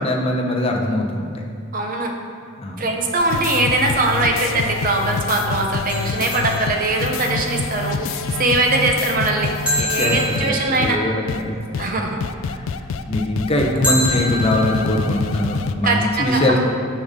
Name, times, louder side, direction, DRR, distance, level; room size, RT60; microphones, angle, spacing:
voice 1, 0.0-1.4 2.6-2.9 9.9-12.1 12.5-12.7 13.1-16.6, left 1 dB, 30° left, 1 dB, 0.8 m, -22 dB
voice 2, 1.7-2.1 2.8-11.0 11.8-12.2 15.8-16.6, right 2 dB, 40° right, 2 dB, 0.8 m, -21 dB
sound 1, 3.2-10.5 10.8-10.9 11.3-11.4 11.7-11.9 12.2-15.7, left 4 dB, 70° left, 0.3 m, -26 dB
sound 2, 5.9-7.4 9.7-11.3 13.8-14.9, left 1 dB, 5° right, 1.4 m, -26 dB
8.7 x 5.4 x 3.7 m, 2.3 s
head